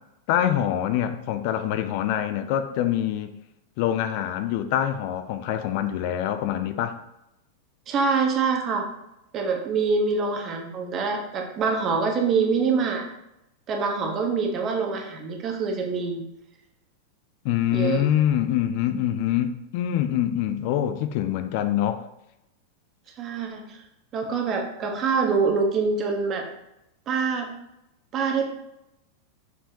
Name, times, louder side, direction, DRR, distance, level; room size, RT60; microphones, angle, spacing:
voice 1, 0.3-3.3 3.8-7.0 17.4-22.0, left 11 dB, 45° left, 9 dB, 0.4 m, -25 dB
voice 2, 7.9-8.9 9.3-13.0 13.7-16.2 17.7-18.1 23.2-23.8 24.1-26.5 27.1-27.5 28.1-28.5, right 5 dB, 30° right, 3 dB, 1.2 m, -25 dB
6.5 x 5.5 x 2.8 m, 0.86 s
figure-of-eight pair, 90°, 0 cm